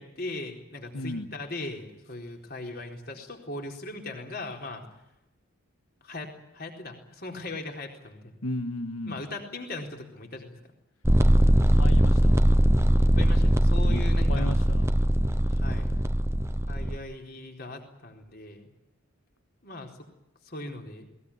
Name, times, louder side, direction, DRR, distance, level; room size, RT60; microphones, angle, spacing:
voice 1, 0.0-4.9 6.0-8.3 9.1-10.5 13.0-14.5 15.5-15.9 16.7-18.7 19.6-19.9 20.4-21.1, left 2 dB, 45° left, 2 dB, 4.2 m, -39 dB
voice 2, 0.9-1.3 8.4-9.2 11.2-11.3 11.7-12.4 13.8-14.9, left 1 dB, 80° left, 9 dB, 1.8 m, -35 dB
sound 1, 11.0-17.0, equal, 10° right, 0.8 m, -21 dB
21.5 x 19.5 x 10.0 m, 0.87 s
head